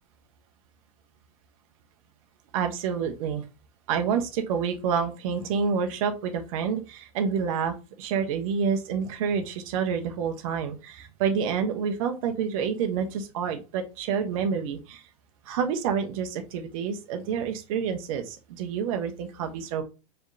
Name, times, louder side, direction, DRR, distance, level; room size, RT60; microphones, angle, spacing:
voice 1, 2.5-3.4 3.9-15.0 15.5-19.8, right 6 dB, 60° right, 6 dB, 1.0 m, -28 dB
4.7 x 3.1 x 2.7 m, 0.30 s
hypercardioid pair, 125°, 20 cm